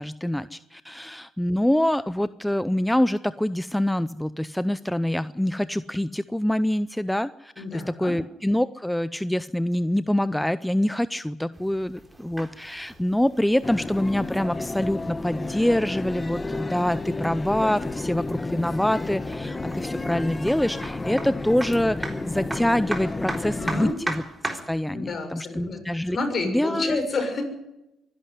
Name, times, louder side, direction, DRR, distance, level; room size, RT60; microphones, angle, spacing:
voice 1, 0.0-24.2 24.7-26.2 26.4-27.0, left 1 dB, 5° left, 14 dB, 0.6 m, -25 dB
voice 2, 7.6-8.1 23.4-23.9 24.9-25.8 26.1-27.4, left 3 dB, 50° left, 5 dB, 6.7 m, -29 dB
sound 1, 11.5-24.8, right 1 dB, 10° right, 3.8 m, -39 dB
sound 2, 13.6-23.9, left 2 dB, 20° left, 1.2 m, -32 dB
24.0 x 11.5 x 9.5 m, 0.90 s
cardioid pair, 90°, 0 cm